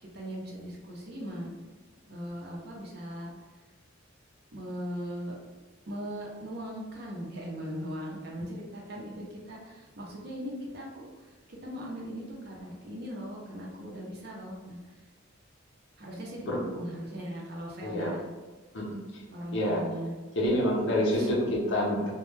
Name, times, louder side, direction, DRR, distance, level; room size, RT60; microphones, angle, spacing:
voice 1, 0.0-1.5 2.1-3.3 4.5-5.3 5.9-11.3 11.6-14.8 16.0-18.2 19.3-20.1 21.1-21.3, equal, 55° right, -3 dB, 0.6 m, -39 dB
voice 2, 17.8-18.1 18.7-19.0 19.5-19.9 20.4-22.1, left 1 dB, 65° left, -2 dB, 0.6 m, -27 dB
2.1 x 2.1 x 3.1 m, 1.2 s
head